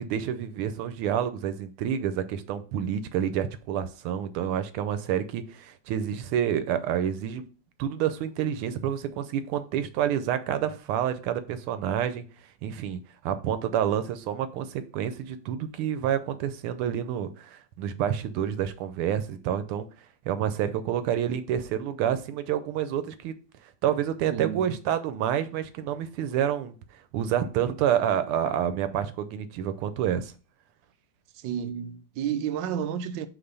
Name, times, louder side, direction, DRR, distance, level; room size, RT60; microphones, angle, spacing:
voice 1, 0.0-7.4 7.8-12.2 12.6-19.9 20.3-23.3 23.8-26.7 27.1-30.3, right 9 dB, 90° right, 1.5 m, -28 dB
voice 2, 24.3-24.8 31.3-33.3, right 9 dB, 70° right, 1.1 m, -31 dB
6.0 x 3.3 x 5.3 m
omnidirectional pair, 2.4 m